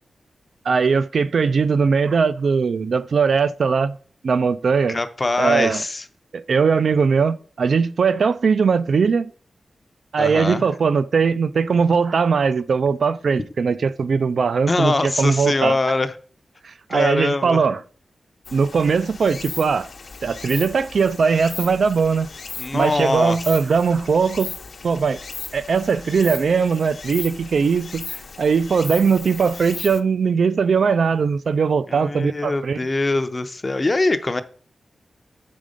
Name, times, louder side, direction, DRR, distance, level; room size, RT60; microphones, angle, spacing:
voice 1, 0.6-4.0 4.2-5.0 5.4-5.8 6.3-9.3 10.1-15.8 16.6-17.8 18.5-19.9 20.2-22.3 22.7-24.5 24.8-25.2 25.5-32.8, right 5 dB, 65° right, 0.4 m, -20 dB
voice 2, 4.9-6.0 10.2-10.6 14.7-16.1 16.9-17.6 22.6-23.4 31.9-34.4, left 2 dB, 25° left, 0.6 m, -22 dB
Stream, 18.5-30.0, left 4 dB, 55° left, 0.8 m, -36 dB
7.4 x 5.3 x 5.0 m
wide cardioid pair, 135°, 0 cm